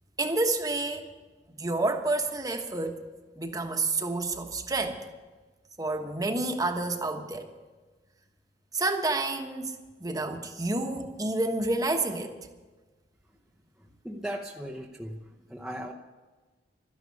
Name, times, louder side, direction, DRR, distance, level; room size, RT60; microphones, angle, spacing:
voice 1, 0.2-1.1 1.6-3.0 3.4-5.0 5.8-7.5 8.7-12.4, right 2 dB, 20° right, 5 dB, 1.2 m, -29 dB
voice 2, 13.8-15.9, equal, 5° right, -3 dB, 0.8 m, -38 dB
13.0 x 11.0 x 8.4 m, 1.3 s
head